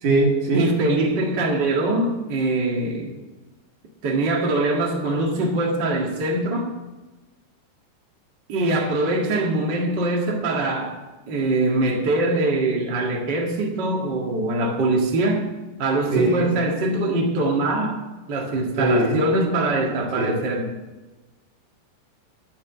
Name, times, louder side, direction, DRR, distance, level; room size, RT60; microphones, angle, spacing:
voice 1, 0.0-0.6 16.1-16.5 18.8-19.2 20.1-20.4, right 2 dB, 55° right, 0 dB, 3.3 m, -21 dB
voice 2, 0.5-3.1 4.0-6.7 8.5-10.9 11.3-15.5 15.8-18.0 18.3-20.7, right 2 dB, 40° right, -1 dB, 1.6 m, -23 dB
13.5 x 5.9 x 9.5 m, 1.2 s
omnidirectional pair, 4.8 m